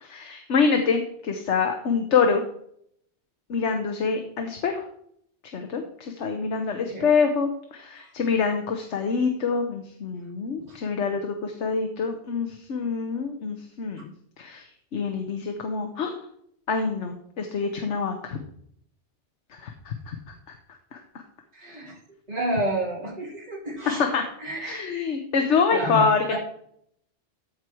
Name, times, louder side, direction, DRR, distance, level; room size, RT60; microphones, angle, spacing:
voice 1, 0.0-2.4 3.5-4.8 5.5-14.1 14.4-14.6 14.9-16.1 16.7-18.4 19.5-20.1 20.9-21.2 24.0-24.2 24.6-26.4, left 5 dB, 90° left, 5 dB, 1.3 m, -26 dB
voice 2, 21.5-21.9 22.3-24.0 24.4-25.0 25.7-26.4, right 1 dB, 35° right, -4 dB, 3.3 m, -30 dB
14.0 x 4.8 x 4.5 m, 0.69 s
omnidirectional pair, 1.2 m